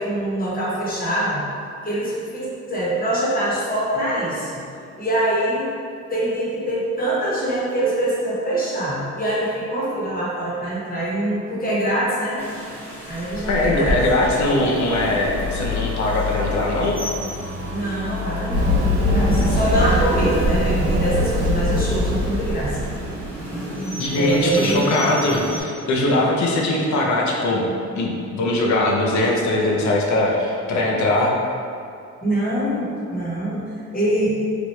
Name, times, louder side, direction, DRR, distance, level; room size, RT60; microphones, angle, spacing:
voice 1, 0.0-1.4 1.8-4.6 5.0-5.7 6.1-12.5 13.1-14.0 17.7-22.8 24.2-24.9 32.2-34.4, right 1 dB, 30° left, -8 dB, 1.1 m, -24 dB
Rain, 12.4-25.6, equal, 5° left, 0.8 m, -32 dB
voice 2, 13.4-17.0 24.0-27.6 28.0-31.3, left 1 dB, 70° left, -1 dB, 0.6 m, -21 dB
sound 1, 14.7-21.3, left 4 dB, 40° right, 0.4 m, -31 dB
Run, 18.5-23.3, left 1 dB, 70° right, 0.8 m, -21 dB
3.0 x 2.5 x 3.1 m, 2.4 s
cardioid pair, 90°, 30 cm